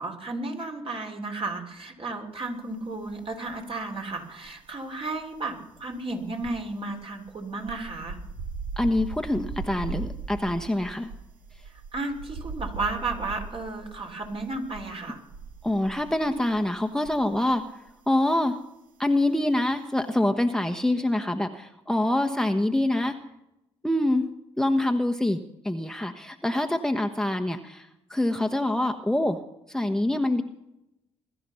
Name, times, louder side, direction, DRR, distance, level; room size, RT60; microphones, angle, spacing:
voice 1, 0.0-8.2 11.7-15.2, right 3 dB, 40° right, 3 dB, 3.6 m, -33 dB
sound 1, 3.0-17.6 17.9-18.1, right 4 dB, 70° right, 1.7 m, -39 dB
voice 2, 8.8-11.1 15.6-17.6 18.1-18.6 19.0-23.2 23.8-24.2 24.6-25.4 25.6-29.4 29.7-30.4, left 1 dB, 5° left, 4 dB, 1.2 m, -25 dB
21.5 x 11.5 x 5.8 m, 0.87 s
hypercardioid pair, 45°, 14 cm